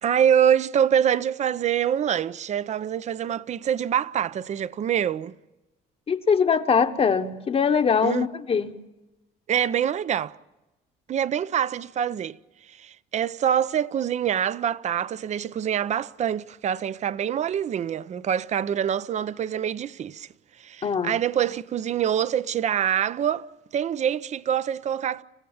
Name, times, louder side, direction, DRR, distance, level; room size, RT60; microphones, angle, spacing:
voice 1, 0.0-5.3 8.0-8.3 9.5-10.4 11.1-12.4 12.8-20.3 20.6-23.5 23.7-25.2, right 9 dB, 45° right, 0.6 m, -25 dB
voice 2, 6.1-8.7 20.8-21.1, left 6 dB, 35° left, 1.1 m, -22 dB
27.5 x 15.5 x 7.2 m
cardioid pair, 110°, 17 cm